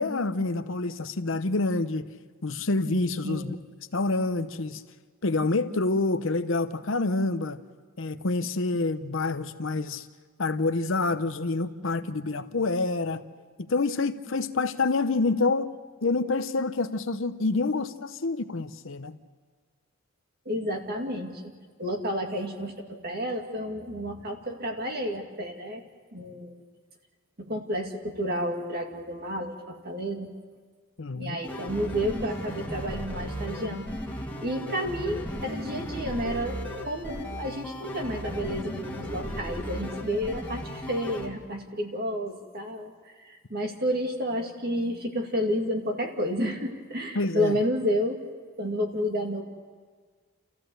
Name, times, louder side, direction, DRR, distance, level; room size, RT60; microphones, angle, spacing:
voice 1, 0.0-2.1 2.4-3.6 3.9-4.8 5.2-7.6 8.0-10.1 10.4-13.2 13.6-15.7 16.0-19.2 31.0-31.4 47.1-47.6, left 3 dB, 65° left, 11 dB, 0.8 m, -27 dB
voice 2, 3.2-3.5 20.5-21.5 21.8-25.8 26.1-26.6 27.4-30.3 31.2-33.9 34.4-36.6 36.8-42.9 43.2-48.2 48.6-49.4, equal, 45° right, 3 dB, 2.3 m, -30 dB
sound 1, 31.4-41.3, equal, 10° left, 2.1 m, -36 dB
29.5 x 14.5 x 7.9 m, 1.5 s
head